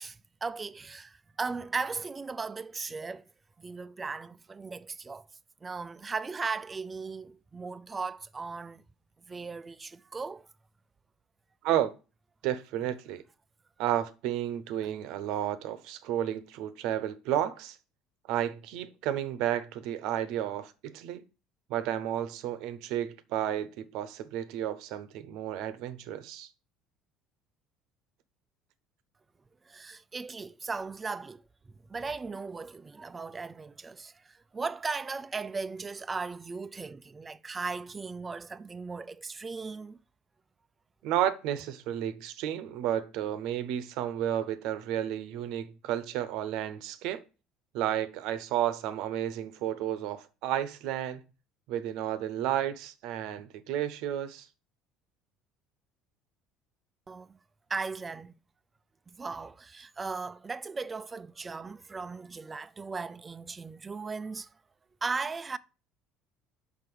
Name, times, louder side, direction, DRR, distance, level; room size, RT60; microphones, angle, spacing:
voice 1, 0.0-3.2 3.6-5.3 5.6-8.8 9.3-10.5 29.7-31.4 31.9-40.0 57.1-57.3 57.7-58.3 59.2-64.5 65.0-65.6, right 4 dB, 25° right, 0.4 m, -37 dB
voice 2, 12.4-13.2 13.8-17.8 18.3-21.2 21.7-26.5 41.0-47.2 47.7-51.3 51.7-54.5, right 11 dB, 65° right, 0.8 m, -32 dB
6.0 x 5.7 x 4.7 m
hypercardioid pair, 65°, 0 cm